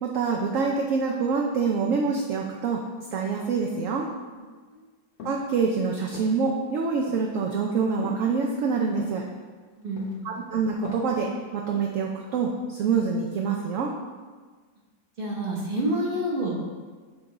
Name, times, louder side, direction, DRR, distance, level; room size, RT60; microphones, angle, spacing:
voice 1, 0.0-2.8 3.1-4.1 5.2-9.2 10.2-13.9, right 5 dB, 65° right, 0 dB, 0.8 m, -26 dB
sound 1, 5.2-5.5 6.1-6.4 7.1-7.2 8.0-8.2 8.9-9.2 10.0-10.4 10.7-11.2 11.7-12.0, left 5 dB, 65° left, 1.3 m, -39 dB
voice 2, 9.8-10.3 15.2-16.5, right 1 dB, 40° right, -3 dB, 1.1 m, -28 dB
6.7 x 3.7 x 4.0 m, 1.4 s
omnidirectional pair, 1.7 m